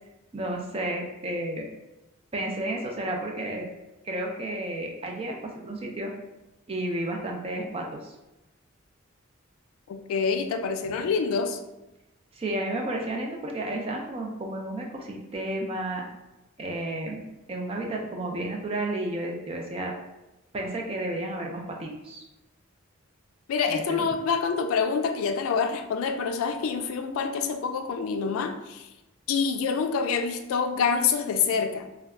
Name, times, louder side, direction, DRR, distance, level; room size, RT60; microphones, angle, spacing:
voice 1, 0.3-1.7 2.3-3.7 4.0-6.1 6.7-8.1 12.3-16.0 16.6-19.9 20.5-22.2 23.7-24.0, right 1 dB, 25° right, 1 dB, 0.4 m, -32 dB
voice 2, 9.9-11.6 23.5-28.9 29.3-31.9, left 5 dB, 80° left, 7 dB, 0.3 m, -26 dB
2.2 x 2.1 x 3.5 m, 0.99 s
head